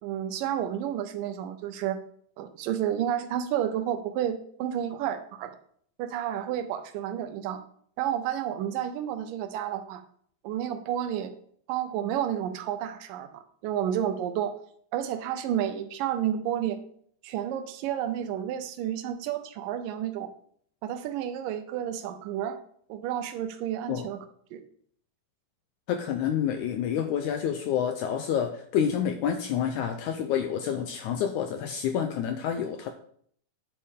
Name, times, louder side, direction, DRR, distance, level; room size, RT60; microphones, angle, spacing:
voice 1, 0.0-2.0 2.4-5.6 6.0-7.6 8.0-10.0 10.4-11.3 11.7-14.5 14.9-16.8 17.2-20.3 20.8-22.6 22.9-24.2 24.5-24.6, right 10 dB, 80° right, 9 dB, 2.3 m, -31 dB
voice 2, 25.9-32.9, left 8 dB, 80° left, 7 dB, 1.8 m, -28 dB
9.6 x 7.2 x 3.6 m, 0.62 s
omnidirectional pair, 4.0 m